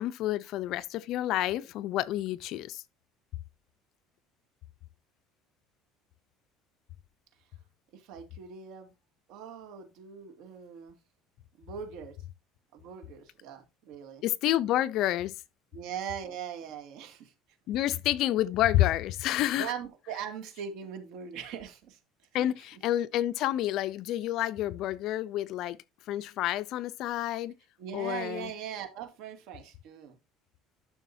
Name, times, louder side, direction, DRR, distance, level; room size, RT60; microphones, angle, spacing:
voice 1, 0.0-2.8 14.2-15.3 17.7-19.7 22.3-25.8 26.1-27.5 27.9-28.5, left 13 dB, 55° left, 0.6 m, -29 dB
voice 2, 7.9-8.9 9.3-11.0 11.6-12.2 12.7-14.2 15.7-17.3 19.6-22.0 22.3-22.5 27.8-30.2, right 8 dB, 65° right, 2.3 m, -40 dB
11.5 x 6.3 x 2.7 m
cardioid pair, 145°, 0 cm